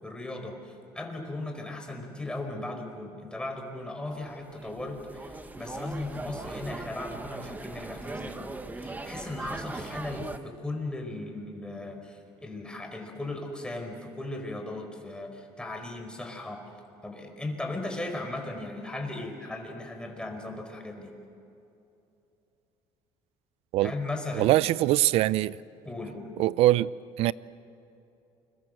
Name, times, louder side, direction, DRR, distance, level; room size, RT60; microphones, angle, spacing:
voice 1, 0.0-16.6 17.0-21.1 23.8-24.5 25.8-26.3, left 2 dB, 10° left, 4.9 m, -37 dB
sound 1, 4.1-10.4, right 2 dB, 15° right, 1.3 m, -39 dB
voice 2, 24.4-25.6 26.4-26.9 27.2-27.3, right 15 dB, 70° right, 0.6 m, -22 dB
29.0 x 22.5 x 7.9 m
cardioid pair, 110°, 10 cm